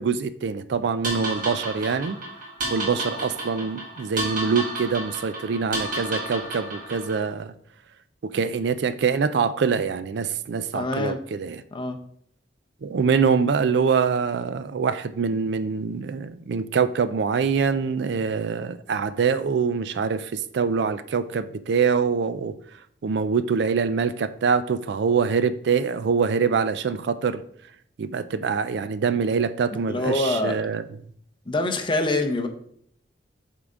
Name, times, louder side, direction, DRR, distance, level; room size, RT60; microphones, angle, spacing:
voice 1, 0.0-2.2 2.7-7.5 8.2-11.6 12.8-22.5 23.0-27.4 28.0-30.8, right 5 dB, 65° right, 13 dB, 0.4 m, -24 dB
sound 1, 1.0-7.3, right 2 dB, 50° right, 1.6 m, -32 dB
voice 2, 10.7-11.2 11.7-12.0 29.9-30.6 31.5-32.5, left 2 dB, 30° left, 5 dB, 0.7 m, -25 dB
7.9 x 3.7 x 3.6 m, 0.65 s
head